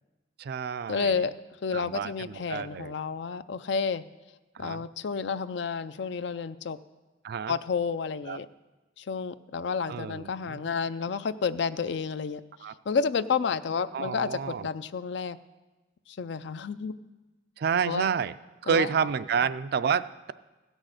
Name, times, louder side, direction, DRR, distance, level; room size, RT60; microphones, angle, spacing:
voice 1, 0.4-1.2 1.7-2.9 4.5-4.9 7.2-7.5 8.3-8.4 9.9-10.6 12.6-12.7 13.9-14.7 17.6-18.3 18.6-20.3, right 6 dB, 55° right, 15 dB, 0.4 m, -29 dB
voice 2, 0.9-1.3 1.6-4.0 4.6-6.8 7.5-8.5 9.0-12.4 12.9-15.4 16.1-17.0 17.8-18.1 18.7-18.9, left 5 dB, 65° left, 14 dB, 0.4 m, -30 dB
15.5 x 6.3 x 6.5 m, 1.2 s
head